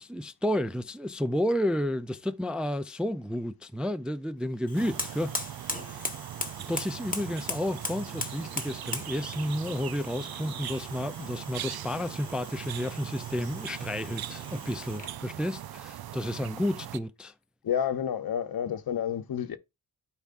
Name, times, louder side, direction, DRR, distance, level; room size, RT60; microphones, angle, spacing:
voice 1, 0.0-5.3 5.8-6.1 6.7-17.3, left 1 dB, ahead, 0.4 m, -31 dB
Fire, 4.6-15.2, left 3 dB, 20° left, 1.2 m, -40 dB
sound 1, 4.7-17.0, right 11 dB, 70° right, 0.5 m, -40 dB
voice 2, 17.6-19.6, left 8 dB, 65° left, 0.8 m, -30 dB
12.0 x 4.7 x 2.5 m
cardioid pair, 85°, 39 cm